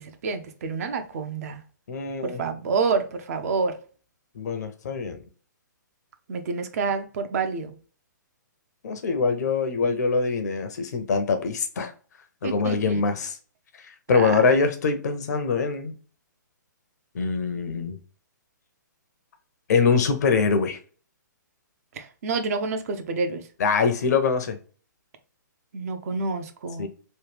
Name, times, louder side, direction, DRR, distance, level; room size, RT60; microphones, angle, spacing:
voice 1, 0.0-1.6 2.2-3.8 6.3-7.7 12.4-13.0 14.1-14.5 21.9-23.4 25.7-26.9, right 4 dB, 50° right, 0.6 m, -28 dB
voice 2, 1.9-2.4 4.4-5.2 8.8-11.9 12.4-13.4 14.1-15.9 17.1-18.0 19.7-20.8 23.6-24.6 26.8-26.9, left 5 dB, 60° left, 0.7 m, -23 dB
3.2 x 2.3 x 3.2 m
hypercardioid pair, 135°, 10 cm